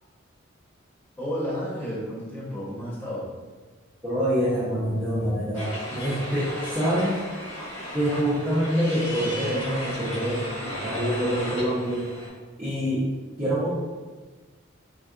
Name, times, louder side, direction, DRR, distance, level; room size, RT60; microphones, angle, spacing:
voice 1, 1.2-3.3, equal, 10° left, -9 dB, 0.9 m, -32 dB
voice 2, 4.0-7.2 7.9-12.1 12.6-13.1 13.4-13.7, equal, 10° right, -13 dB, 0.5 m, -26 dB
sound 1, 5.5-12.3, equal, 80° left, 1.3 m, -35 dB
3.6 x 2.3 x 2.3 m, 1.4 s
head